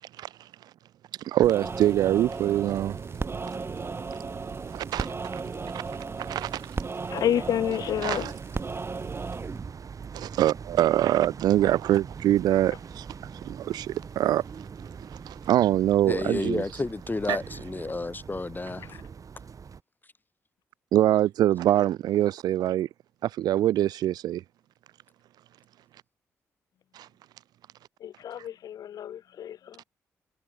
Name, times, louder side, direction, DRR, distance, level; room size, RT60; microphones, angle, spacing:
voice 1, 1.2-3.0 4.7-5.4 5.7-5.8 6.3-6.6 8.0-8.3 10.1-13.1 13.4-14.4 15.3-16.6 17.3-17.4 20.9-22.9 23.2-24.4 27.0-27.1, right 12 dB, 70° right, 0.4 m, -24 dB
sound 1, 1.4-9.8, right 4 dB, 35° right, 1.3 m, -36 dB
sound 2, 1.6-19.8, right 6 dB, 55° right, 3.5 m, -41 dB
voice 2, 7.1-8.3 28.0-29.8, left 10 dB, 60° left, 0.4 m, -29 dB
voice 3, 16.1-18.9, left 3 dB, 25° left, 2.1 m, -31 dB
hypercardioid pair, 45°, 7 cm